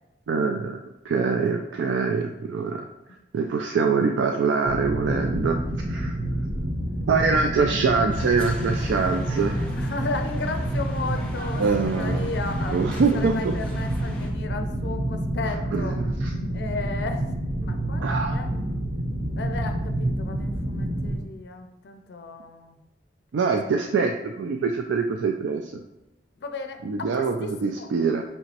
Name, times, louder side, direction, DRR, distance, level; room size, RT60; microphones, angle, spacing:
voice 1, 0.3-2.8 3.3-5.6 5.9-6.2 7.1-9.7 11.6-12.3 12.7-13.5 15.7-16.3 18.0-18.4 23.3-25.8 26.8-28.2, right 4 dB, 85° right, 3 dB, 0.3 m, -24 dB
sound 1, 4.6-21.2, right 1 dB, 45° right, 0.7 m, -28 dB
voice 2, 6.6-7.0 7.3-7.5 9.7-16.0 16.5-17.2 17.6-18.0 18.3-18.6 19.4-22.8 23.6-23.8 26.4-27.9, left 3 dB, 70° left, 6 dB, 0.4 m, -35 dB
sound 2, 8.1-14.3, equal, 5° left, 0.5 m, -42 dB
5.3 x 2.9 x 2.8 m, 0.98 s
head